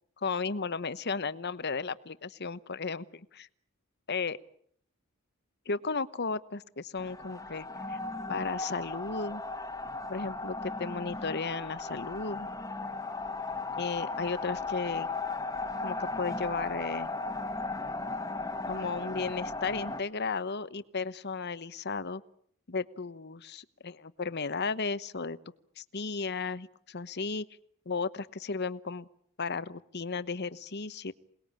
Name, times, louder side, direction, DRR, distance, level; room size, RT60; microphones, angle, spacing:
voice 1, 0.2-3.5 4.1-4.4 5.7-8.0 8.3-9.4 10.1-12.5 13.8-15.1 15.8-17.1 18.7-22.2 22.7-25.4 25.8-27.5 27.9-29.1 29.4-31.1, left 4 dB, 50° left, 14 dB, 1.0 m, -34 dB
sound 1, 7.0-20.0, left 3 dB, 15° left, 1.6 m, -36 dB
27.5 x 20.0 x 8.9 m, 0.65 s
head